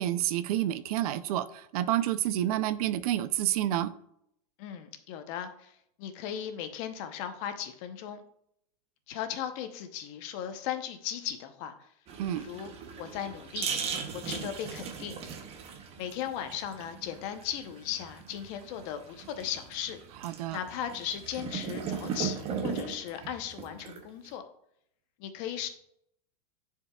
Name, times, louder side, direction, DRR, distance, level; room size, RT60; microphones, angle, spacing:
voice 1, 0.0-3.9 12.2-12.5 20.2-20.6, right 12 dB, 65° right, 14 dB, 0.5 m, -29 dB
voice 2, 4.6-8.2 9.1-11.9 12.3-13.7 14.1-15.2 16.0-20.0 20.5-24.4 25.2-25.7, left 10 dB, 50° left, 8 dB, 0.8 m, -37 dB
sound 1, 12.1-24.3, right 6 dB, 30° right, 0.9 m, -38 dB
10.5 x 4.7 x 2.3 m, 0.73 s
supercardioid pair, 145°, 20 cm